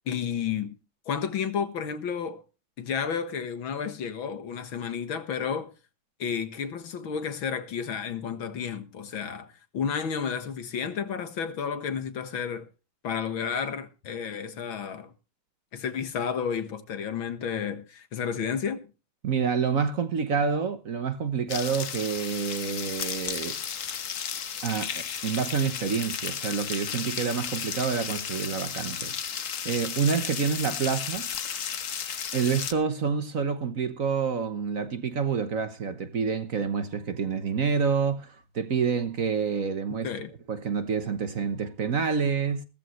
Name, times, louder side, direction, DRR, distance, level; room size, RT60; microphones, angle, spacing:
voice 1, 0.1-0.7 1.1-2.4 2.8-5.7 6.2-9.5 9.7-12.7 13.0-15.1 15.7-18.8 40.0-40.3, left 7 dB, 80° left, 2.4 m, -31 dB
voice 2, 19.2-23.6 24.6-31.3 32.3-40.1 40.5-42.6, right 6 dB, 50° right, 1.4 m, -28 dB
sound 1, 21.5-32.7, left 7 dB, 50° left, 1.2 m, -34 dB
16.5 x 14.0 x 3.2 m
omnidirectional pair, 2.2 m